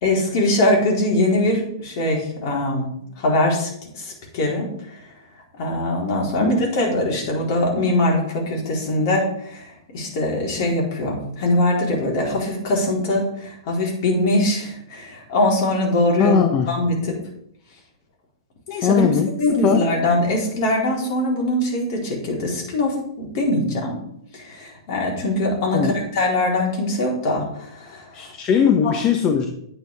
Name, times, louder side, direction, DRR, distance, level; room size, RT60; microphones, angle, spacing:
voice 1, 0.0-2.9 3.2-5.0 5.5-16.4 16.7-17.1 18.7-19.1 19.4-24.0 24.3-28.3, left 1 dB, 50° left, -1 dB, 4.0 m, -22 dB
voice 2, 16.2-16.7 18.8-19.9 25.7-26.0 28.1-29.5, left 6 dB, 30° left, 4 dB, 1.0 m, -19 dB
9.4 x 8.9 x 3.6 m, 0.73 s
hypercardioid pair, 120°, 2 cm